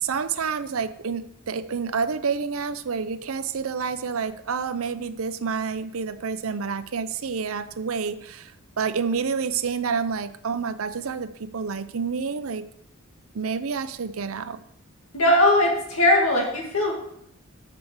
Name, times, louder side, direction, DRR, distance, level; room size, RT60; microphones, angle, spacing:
voice 1, 0.0-8.5 8.8-12.6 13.3-14.6, right 5 dB, 75° right, 12 dB, 0.6 m, -28 dB
voice 2, 15.1-16.9, left 1 dB, 85° left, -1 dB, 2.2 m, -19 dB
8.0 x 5.2 x 7.0 m, 0.73 s
head